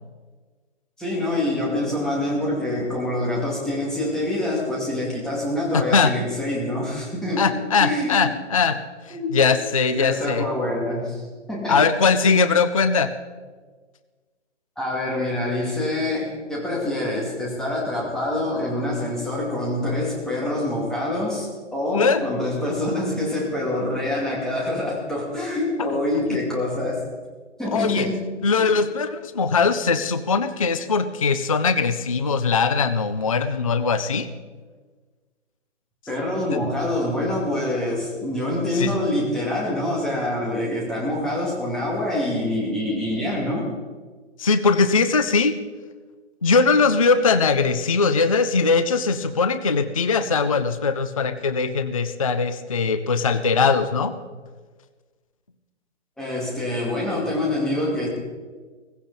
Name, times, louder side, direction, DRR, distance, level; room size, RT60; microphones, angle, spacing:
voice 1, 1.0-7.5 7.8-8.2 9.1-9.4 10.0-11.2 11.5-11.8 12.2-12.4 14.8-27.0 27.6-28.2 36.1-43.7 56.2-58.1, left 1 dB, ahead, -5 dB, 2.3 m, -25 dB
voice 2, 5.7-6.1 7.4-8.8 9.1-10.5 11.7-13.1 21.9-22.2 26.3-26.4 27.7-28.1 28.4-34.3 36.5-36.6 38.7-38.9 44.4-45.6 46.4-54.1, left 4 dB, 30° left, 11 dB, 0.4 m, -20 dB
18.0 x 16.0 x 4.0 m, 1.4 s
hypercardioid pair, 160°, 37 cm